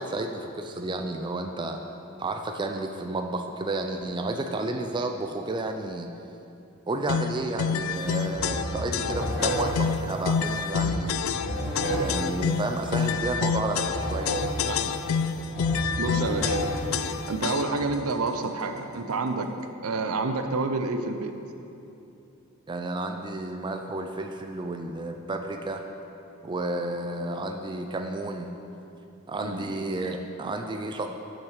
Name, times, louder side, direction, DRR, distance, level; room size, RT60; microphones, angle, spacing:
voice 1, 0.0-1.8 2.2-6.1 6.9-11.1 12.0-14.3 22.7-25.8 26.4-28.5 29.3-31.1, right 2 dB, 20° right, 4 dB, 0.4 m, -31 dB
sound 1, 7.1-17.9, left 6 dB, 70° left, 0.3 m, -28 dB
sound 2, 7.9-8.1 8.3-17.6, equal, 45° left, 2.0 m, -32 dB
voice 2, 16.0-16.6 17.3-19.5 19.8-21.4 29.4-29.6, right 3 dB, 85° right, 7 dB, 0.6 m, -28 dB
6.5 x 6.1 x 6.5 m, 2.8 s
head